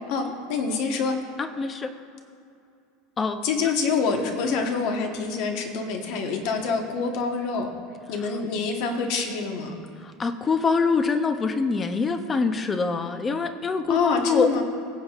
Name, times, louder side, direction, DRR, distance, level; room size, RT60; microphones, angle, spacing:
voice 1, 0.1-1.2 3.4-7.7 8.1-9.8 13.9-14.6, left 5 dB, 50° left, 4 dB, 1.2 m, -26 dB
voice 2, 1.4-1.9 3.2-3.7 10.0-14.5, left 4 dB, 15° left, 9 dB, 0.5 m, -25 dB
20.5 x 7.1 x 2.4 m, 2.5 s
supercardioid pair, 170°, 0 cm